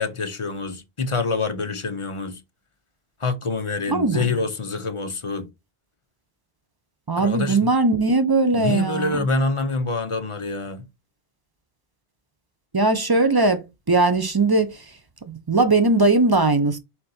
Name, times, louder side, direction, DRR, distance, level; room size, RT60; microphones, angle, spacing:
voice 1, 0.0-2.4 3.2-5.5 7.2-7.7 8.5-10.8, left 3 dB, 35° left, 0.6 m, -26 dB
voice 2, 3.9-4.4 7.1-9.2 12.7-13.6 13.9-14.8 15.3-16.8, right 3 dB, 30° right, 0.5 m, -19 dB
4.5 x 3.7 x 2.7 m
omnidirectional pair, 1.0 m